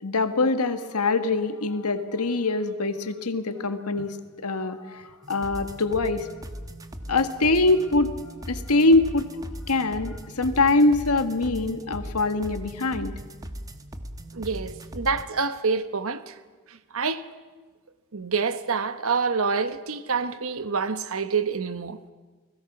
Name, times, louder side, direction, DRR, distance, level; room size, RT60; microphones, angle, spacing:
voice 1, 0.0-4.2 4.4-6.3 7.1-8.1 8.5-9.3 9.7-13.1, left 3 dB, 90° left, 1.7 m, -23 dB
sound 1, 5.2-15.2, equal, 15° right, 1.2 m, -39 dB
voice 2, 14.3-16.4 16.9-17.2 18.1-22.0, right 5 dB, 65° right, 1.2 m, -27 dB
30.0 x 20.5 x 6.1 m
head